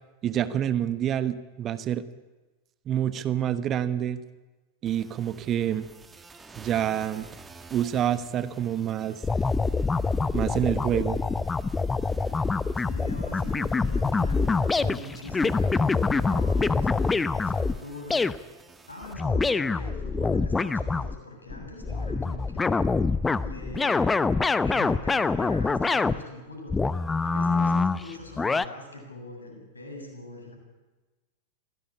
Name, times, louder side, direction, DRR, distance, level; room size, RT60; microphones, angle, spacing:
voice 1, 0.2-2.0 2.9-4.2 4.8-5.9 6.6-7.3 7.7-9.2 10.3-11.2, right 10 dB, 30° right, 14 dB, 1.2 m, -27 dB
sound 1, 4.9-19.1, right 4 dB, 15° right, 2.3 m, -51 dB
sound 2, 9.2-17.8 18.1-18.4 19.0-21.2 21.5-26.2 26.7-28.6, left 4 dB, 10° left, 0.8 m, -25 dB
voice 2, 12.8-18.3 18.9-22.8 23.4-24.1 24.6-26.8 27.2-30.5, left 1 dB, 75° left, 3 dB, 7.6 m, -42 dB
25.0 x 17.5 x 9.9 m, 1.2 s
figure-of-eight pair, 90°, 0 cm